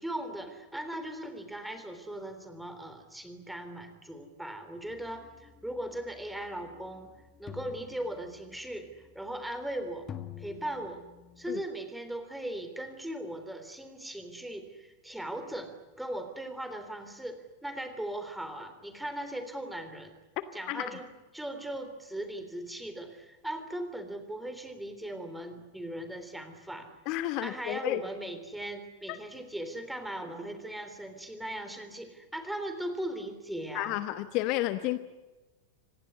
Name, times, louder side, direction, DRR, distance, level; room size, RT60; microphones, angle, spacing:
voice 1, 0.0-7.1 7.4-10.1 10.4-11.0 11.4-20.1 20.5-21.1 21.3-26.9 27.4-34.0, right 1 dB, 5° right, 8 dB, 3.5 m, -38 dB
sound 1, 4.9-11.6, left 9 dB, 25° left, 1.7 m, -50 dB
voice 2, 27.1-28.0 29.1-29.2 33.7-35.0, left 16 dB, 40° left, 12 dB, 1.1 m, -31 dB
26.5 x 18.5 x 9.8 m, 1.2 s
figure-of-eight pair, 90°, 0 cm